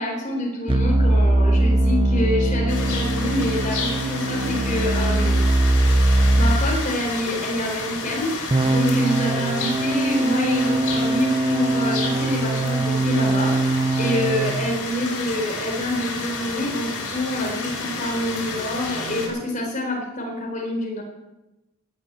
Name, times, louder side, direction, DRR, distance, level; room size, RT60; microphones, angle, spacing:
voice 1, 0.0-5.4 6.1-21.0, left 1 dB, 35° left, 0 dB, 4.4 m, -27 dB
sound 1, 0.7-6.6 8.5-14.6, right 2 dB, 25° right, 0.6 m, -21 dB
sound 2, 2.7-19.3, left 3 dB, 85° left, 5.3 m, -31 dB
18.0 x 7.0 x 8.9 m, 1.0 s
head